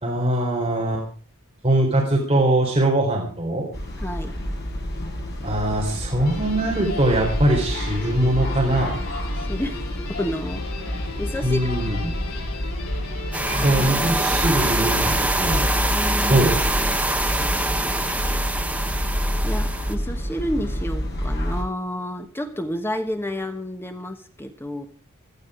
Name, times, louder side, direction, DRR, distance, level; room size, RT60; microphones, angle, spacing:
voice 1, 0.0-1.0 1.6-3.7 5.4-9.0 11.4-12.1 13.5-15.7 16.2-16.6, right 1 dB, 25° right, -2 dB, 3.9 m, -22 dB
sound 1, 3.7-21.6, equal, 50° left, 6.3 m, -28 dB
voice 2, 4.0-4.3 9.5-9.8 10.1-11.7 15.9-16.4 16.7-17.0 19.4-24.9, left 1 dB, 10° left, 6 dB, 1.3 m, -30 dB
Guitar, 6.2-15.6, left 3 dB, 90° left, 7.2 m, -38 dB
sound 2, 13.3-19.9, right 2 dB, 5° right, 1.0 m, -24 dB
17.0 x 14.0 x 4.9 m, 0.41 s
head